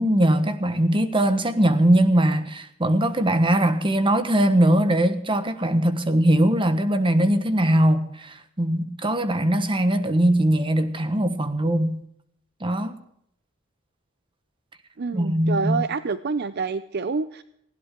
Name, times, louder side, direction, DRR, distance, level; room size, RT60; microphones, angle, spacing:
voice 1, 0.0-12.0 12.6-13.0 15.1-15.8, right 1 dB, 25° right, 1.4 m, -21 dB
voice 2, 15.0-17.4, right 4 dB, 50° right, 0.6 m, -27 dB
19.5 x 16.5 x 3.7 m
head